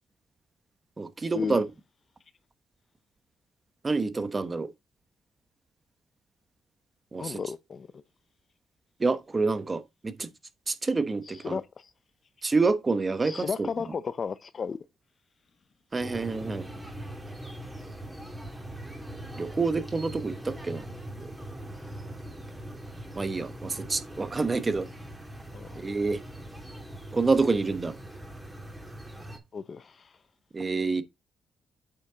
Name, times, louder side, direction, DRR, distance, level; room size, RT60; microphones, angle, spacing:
voice 1, 1.0-1.6 3.8-4.7 7.1-7.4 9.0-10.3 10.7-11.6 12.4-13.7 15.9-16.7 19.3-20.8 21.2-21.3 23.2-24.9 25.7-26.2 27.1-28.0 30.5-31.0, right 3 dB, 25° right, 1.1 m, -27 dB
voice 2, 7.2-8.0 11.4-11.7 13.2-14.8 25.5-25.7 29.5-30.0, left 5 dB, 45° left, 0.5 m, -33 dB
sound 1, 16.0-29.4, right 1 dB, 5° right, 2.4 m, -41 dB
8.6 x 5.3 x 3.8 m
cardioid pair, 100°, 0 cm